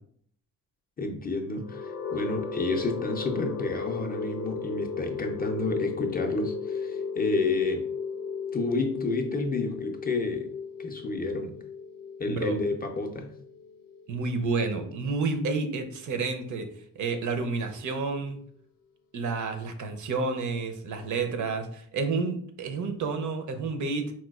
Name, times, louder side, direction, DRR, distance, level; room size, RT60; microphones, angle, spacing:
voice 1, 1.0-7.9 8.5-10.5 10.8-11.6 12.2-13.3, left 3 dB, 30° left, 2 dB, 0.4 m, -30 dB
sound 1, 1.5-15.4, left 5 dB, 85° left, 0.5 m, -35 dB
voice 2, 12.3-12.6 14.1-18.4 19.1-24.1, right 4 dB, 60° right, 6 dB, 0.6 m, -30 dB
4.2 x 2.2 x 2.3 m, 0.62 s
cardioid pair, 100°, 33 cm